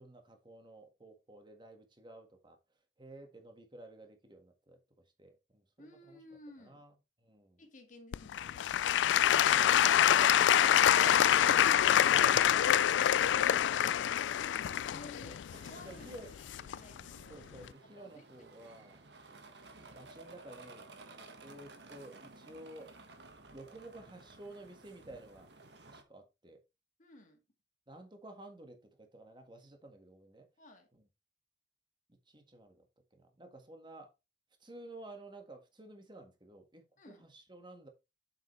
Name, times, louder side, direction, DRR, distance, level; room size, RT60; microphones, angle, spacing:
voice 1, 0.0-2.6 3.0-4.8 5.2-6.2 6.6-6.9 7.2-7.6 8.9-9.8 10.1-11.7 12.2-12.5 15.2-15.4 15.8-16.3 17.3-19.0 19.9-20.9 21.4-22.9 23.5-25.5 25.9-26.6 27.9-30.5 30.9-31.0 32.3-32.9 33.1-34.1 34.6-37.9, right 2 dB, 25° right, 1.7 m, -52 dB
voice 2, 5.8-6.8 7.6-8.7 14.0-16.2 16.7-17.5 18.0-18.3 18.7-18.9 27.0-27.4 30.6-30.9 37.0-37.3, left 2 dB, 45° left, 1.8 m, -55 dB
Applause / Crowd, 8.1-17.0 17.6-17.7, left 10 dB, 85° left, 0.3 m, -26 dB
sound 1, 15.5-26.0, right 3 dB, 70° right, 1.5 m, -55 dB
7.7 x 7.1 x 3.3 m
head